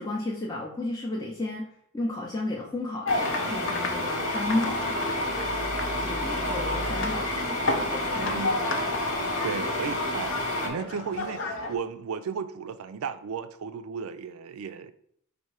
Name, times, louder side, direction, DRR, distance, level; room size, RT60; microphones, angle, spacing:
voice 1, 0.0-5.4 6.0-8.9, left 2 dB, 15° left, 0.5 m, -33 dB
sound 1, 3.0-11.7, left 2 dB, 60° left, 0.6 m, -33 dB
sound 2, 3.1-10.7, left 1 dB, 85° left, 1.2 m, -30 dB
voice 2, 8.2-8.6 9.4-14.9, right 6 dB, 80° right, 0.4 m, -35 dB
4.2 x 2.6 x 4.7 m
head